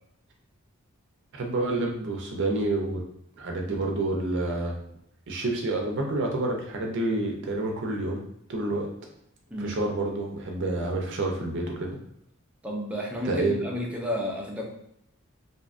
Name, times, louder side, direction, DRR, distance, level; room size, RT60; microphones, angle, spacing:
voice 1, 1.3-3.0 3.4-4.8 5.3-8.2 8.5-8.9 9.6-11.9 13.2-13.7, right 2 dB, 60° right, 1 dB, 0.5 m, -28 dB
voice 2, 12.6-14.7, left 1 dB, 5° right, -2 dB, 0.4 m, -32 dB
2.6 x 2.2 x 2.4 m, 0.75 s
head